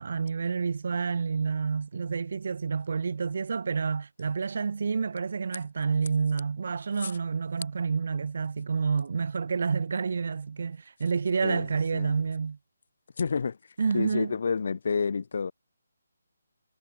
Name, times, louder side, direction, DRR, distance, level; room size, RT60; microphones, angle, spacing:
voice 1, 0.0-12.6 13.8-14.3, right 5 dB, 50° right, 0.5 m, -29 dB
voice 2, 13.2-13.6 13.9-15.5, left 5 dB, 50° left, 1.5 m, -29 dB
hypercardioid pair, 170°, 0 cm